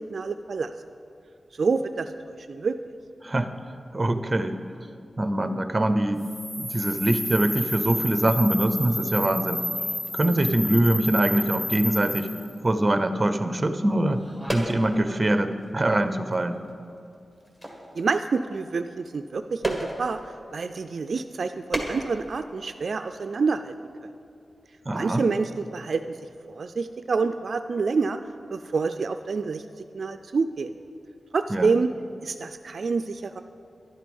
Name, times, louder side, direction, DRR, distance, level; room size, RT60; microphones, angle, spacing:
voice 1, 0.1-0.7 1.6-2.1 2.4-2.8 18.0-20.2 20.5-23.7 24.9-26.2 26.5-28.2 28.5-29.6 29.9-30.7 31.3-31.9 32.2-33.4, right 4 dB, 60° right, 8 dB, 0.3 m, -27 dB
voice 2, 3.9-4.6 5.2-6.2 6.6-9.7 10.1-12.3 12.6-14.2 14.5-16.6 24.9-25.2 31.5-31.7, right 1 dB, 20° right, 9 dB, 0.6 m, -23 dB
sound 1, 6.2-12.5, left 1 dB, 45° left, 2.6 m, -31 dB
sound 2, 7.7-8.5 8.9-13.5 13.9-20.6 21.3-23.1 23.3-23.4, equal, 10° left, 1.8 m, -38 dB
11.0 x 11.0 x 5.3 m, 2.6 s
wide cardioid pair, 130°, 0 cm